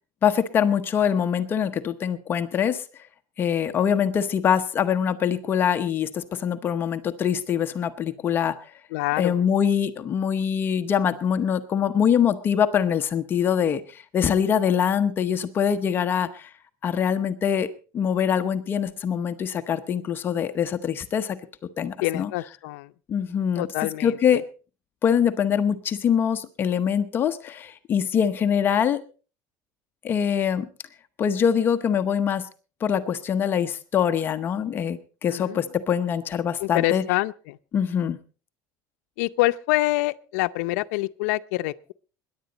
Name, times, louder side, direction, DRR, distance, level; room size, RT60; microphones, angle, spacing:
voice 1, 0.2-2.8 3.4-8.6 9.2-16.5 16.8-17.7 17.9-21.4 21.8-22.3 23.1-23.7 24.0-24.4 25.0-29.0 30.0-30.7 31.2-32.5 32.8-37.0 37.7-38.2, left 8 dB, 25° left, 0.8 m, -23 dB
voice 2, 8.9-9.4 22.0-22.9 23.6-24.2 35.3-35.6 36.6-37.6 39.2-41.9, left 19 dB, 90° left, 0.6 m, -26 dB
22.0 x 10.5 x 4.0 m
cardioid pair, 170°, 8 cm